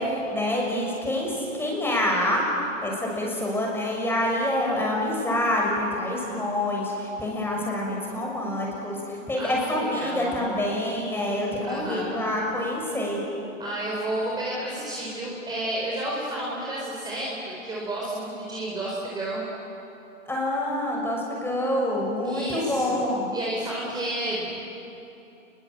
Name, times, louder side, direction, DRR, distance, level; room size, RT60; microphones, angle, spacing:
voice 1, 0.0-13.2 20.3-23.3, left 1 dB, 5° left, -2 dB, 6.2 m, -27 dB
voice 2, 3.1-3.5 9.4-10.7 11.6-12.3 13.6-19.4 22.2-24.6, right 1 dB, 10° right, -4 dB, 4.3 m, -32 dB
29.5 x 22.0 x 8.6 m, 2.9 s
hypercardioid pair, 140°, 40 cm